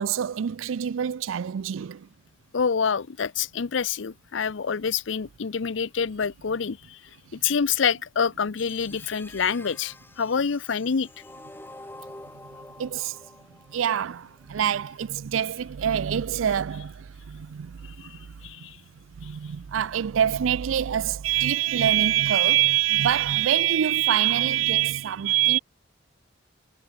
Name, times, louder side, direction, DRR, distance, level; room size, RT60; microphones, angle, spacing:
voice 1, 0.0-2.1 12.8-13.2 13.7-18.3 19.2-25.6, right 10 dB, 80° right, 0.4 m, -25 dB
voice 2, 2.5-7.0 7.3-11.1 18.1-18.8, left 6 dB, 70° left, 0.6 m, -27 dB
sound 1, 8.6-14.6, left 2 dB, 10° left, 1.6 m, -47 dB
head